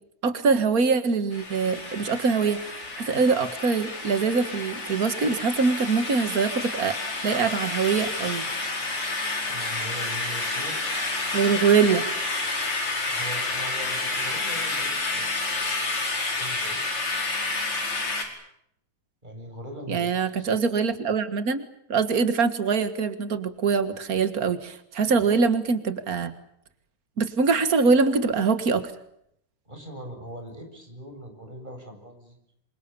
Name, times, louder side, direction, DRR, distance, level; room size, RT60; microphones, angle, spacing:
voice 1, 0.2-7.0 7.2-8.5 11.3-12.0 19.9-26.3 27.2-28.9, right 5 dB, 80° right, 10 dB, 0.8 m, -23 dB
sound 1, 1.3-18.2, left 3 dB, 35° left, 5.9 m, -30 dB
voice 2, 9.5-10.8 13.1-15.9 16.2-16.8 19.2-20.4 25.1-25.2 29.7-32.4, equal, 10° right, 4 dB, 7.7 m, -41 dB
28.0 x 25.5 x 6.9 m, 0.76 s
omnidirectional pair, 4.4 m